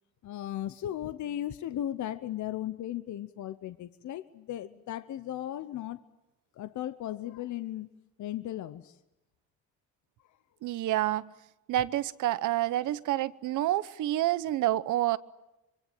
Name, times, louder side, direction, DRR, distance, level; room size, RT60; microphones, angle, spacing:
voice 1, 0.2-6.0 6.6-7.9 8.2-8.9, left 12 dB, 70° left, 12 dB, 1.0 m, -36 dB
voice 2, 10.6-11.3 11.7-15.2, right 14 dB, 80° right, 17 dB, 1.0 m, -28 dB
26.0 x 23.5 x 9.2 m, 0.94 s
cardioid pair, 90°, 30 cm